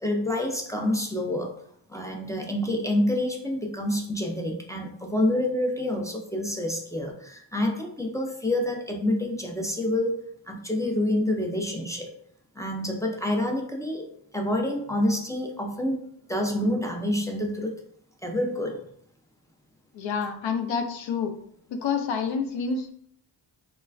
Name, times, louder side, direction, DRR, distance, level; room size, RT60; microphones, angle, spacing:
voice 1, 0.0-1.5 1.9-10.2 10.5-12.1 12.6-14.0 14.3-16.0 16.3-17.7 18.2-18.8, left 1 dB, 10° left, 1 dB, 0.3 m, -27 dB
voice 2, 19.9-21.3 21.7-22.9, left 5 dB, 85° left, 6 dB, 0.5 m, -28 dB
3.1 x 2.2 x 2.3 m, 0.68 s
cardioid pair, 80°, 45 cm